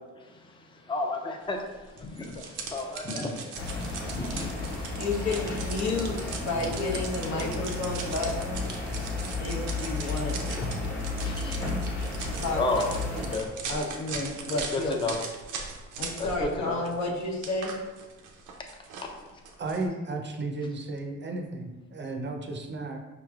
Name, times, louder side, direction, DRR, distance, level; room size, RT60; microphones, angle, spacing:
voice 1, 0.2-1.6 1.9-5.1 11.2-11.6 12.2-12.3 12.6-12.9 13.1-13.5 14.7-15.2 16.4-16.8, left 2 dB, 15° left, 2 dB, 0.5 m, -33 dB
sound 1, 2.0-16.6 16.8-19.9, right 5 dB, 90° right, 0.6 m, -40 dB
sound 2, 3.5-13.4, left 3 dB, 40° left, 1.2 m, -33 dB
voice 2, 4.9-8.7 9.4-10.3 12.4-12.6 13.7-15.0 16.0-17.8, left 2 dB, 70° left, -2 dB, 1.0 m, -31 dB
voice 3, 19.6-23.0, right 2 dB, 35° right, 3 dB, 0.5 m, -34 dB
5.1 x 3.1 x 2.4 m, 1.2 s
cardioid pair, 90°, 30 cm